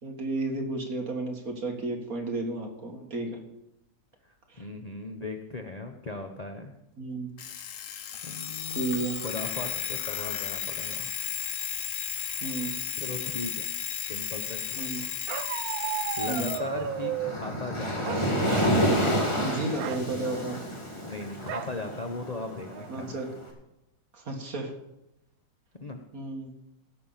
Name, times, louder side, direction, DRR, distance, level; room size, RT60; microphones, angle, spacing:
voice 1, 0.0-3.4 4.5-4.6 7.0-7.3 8.7-9.2 12.4-12.8 14.8-15.0 16.3-16.5 19.4-20.6 22.9-23.3 24.1-24.7 26.1-26.5, right 2 dB, 50° right, 2 dB, 2.3 m, -32 dB
voice 2, 4.2-6.8 8.2-8.9 9.2-11.1 13.0-13.7 14.0-14.9 15.8-18.3 19.0-19.8 21.0-23.2 25.8-26.0, left 3 dB, 40° left, 5 dB, 0.5 m, -38 dB
Alarm, 7.4-16.7, left 8 dB, 60° left, 1.1 m, -34 dB
Bark, 15.3-17.4 18.0-18.8 19.1-19.3 19.7-20.0 21.5-21.8 22.3-22.4 22.7-23.2, right 10 dB, 75° right, 0.8 m, -34 dB
Waves surf, 16.2-23.3, equal, 15° left, 2.0 m, -29 dB
16.5 x 6.9 x 5.7 m, 0.87 s
omnidirectional pair, 2.0 m